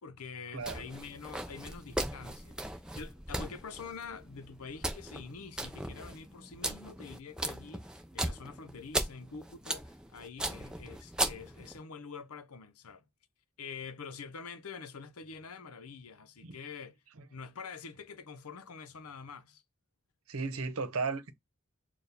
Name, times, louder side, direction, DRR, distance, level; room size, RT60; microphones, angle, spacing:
voice 1, 0.0-13.0 13.6-17.0 17.3-19.6, left 5 dB, 90° left, 0.7 m, -46 dB
voice 2, 0.5-0.8 16.4-16.6 20.3-21.3, right 4 dB, 80° right, 0.9 m, -35 dB
sound 1, 0.6-11.8, right 1 dB, 5° right, 0.5 m, -38 dB
4.6 x 2.4 x 3.4 m
head